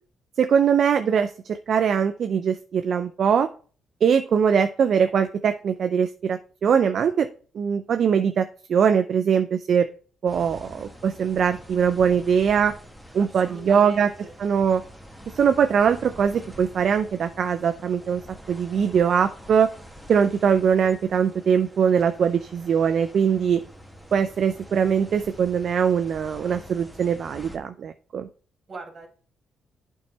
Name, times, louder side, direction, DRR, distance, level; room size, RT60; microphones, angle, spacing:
voice 1, 0.4-3.5 4.0-7.3 7.5-9.9 10.2-12.7 13.1-14.1 14.4-14.8 15.3-18.2 18.5-19.7 20.1-23.6 24.1-28.3, right 7 dB, 60° right, 8 dB, 0.5 m, -21 dB
sound 1, 10.3-27.6, equal, ahead, 1.4 m, -46 dB
voice 2, 13.2-14.3 28.7-29.1, right 2 dB, 40° right, 4 dB, 2.2 m, -41 dB
8.5 x 4.7 x 4.2 m, 0.40 s
cardioid pair, 90°, 0 cm